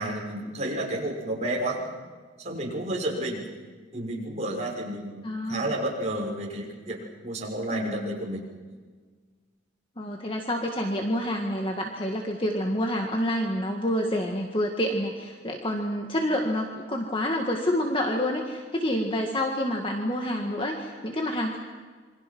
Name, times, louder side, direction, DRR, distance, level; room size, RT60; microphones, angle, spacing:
voice 1, 0.0-1.8 2.4-3.5 3.9-8.5, right 1 dB, 35° right, -2 dB, 6.3 m, -31 dB
voice 2, 5.2-5.8 7.7-8.1 10.0-21.6, equal, 30° left, 2 dB, 1.9 m, -28 dB
27.5 x 24.5 x 6.1 m, 1.5 s
head